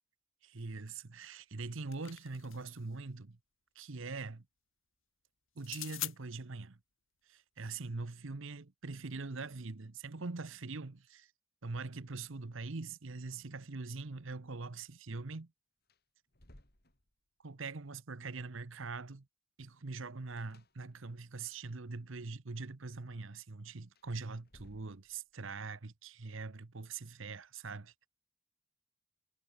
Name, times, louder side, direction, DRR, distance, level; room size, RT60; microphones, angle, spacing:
voice 1, 0.4-3.4 3.8-4.4 5.6-6.8 7.3-11.3 11.6-15.5 17.4-19.3 19.6-28.1, right 3 dB, 65° right, 0.9 m, -43 dB
sound 1, 1.5-2.8 5.6-6.2, left 16 dB, 65° left, 2.7 m, -43 dB
sound 2, 11.8-12.7 12.9-13.1 15.3-15.4 15.8-17.5 20.3-21.3 23.8-25.5, left 1 dB, 45° left, 4.0 m, -63 dB
head